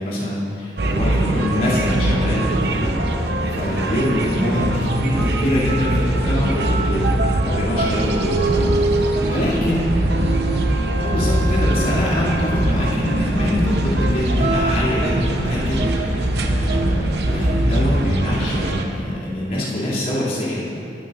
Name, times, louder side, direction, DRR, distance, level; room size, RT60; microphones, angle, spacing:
voice 1, 0.0-8.4 9.2-9.9 11.0-20.6, left 1 dB, 55° left, -10 dB, 2.6 m, -24 dB
sound 1, 0.8-18.8, right 1 dB, 65° right, 0.8 m, -21 dB
voice 2, 8.4-9.1 10.1-10.8 16.4-17.1, equal, 35° left, -8 dB, 2.6 m, -35 dB
19.5 x 9.0 x 2.5 m, 2.7 s
head